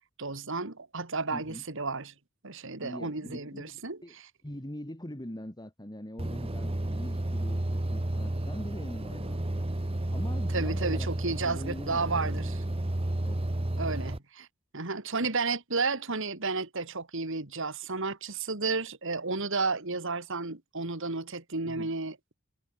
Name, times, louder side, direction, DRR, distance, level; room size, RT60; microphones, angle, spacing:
voice 1, 0.2-2.1 2.4-4.0 10.5-12.6 13.8-14.5 14.7-22.3, right 3 dB, 65° right, 2.7 m, -32 dB
voice 2, 1.3-1.6 2.8-4.1 4.4-9.7 10.1-12.5 13.2-13.5 21.7-21.9, equal, 20° left, 3.2 m, -43 dB
sound 1, 6.2-14.2, right 1 dB, 30° right, 1.1 m, -32 dB
head